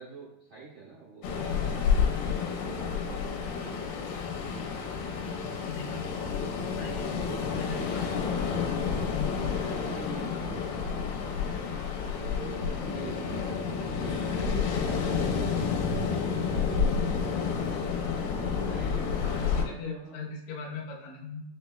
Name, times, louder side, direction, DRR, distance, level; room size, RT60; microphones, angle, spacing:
voice 1, 0.0-4.0 7.0-8.2 8.7-11.3 12.3-13.6 13.8-15.6 16.3-17.9 18.5-20.2, right 4 dB, 75° right, -9 dB, 1.1 m, -46 dB
Ocean, 1.2-19.6, left 6 dB, 90° left, 2.4 m, -30 dB
voice 2, 5.7-6.1 6.7-7.1 7.5-8.5 9.1-9.5 19.2-21.4, left 4 dB, 75° left, -3 dB, 1.7 m, -40 dB
6.5 x 3.0 x 2.2 m, 0.90 s
omnidirectional pair, 4.0 m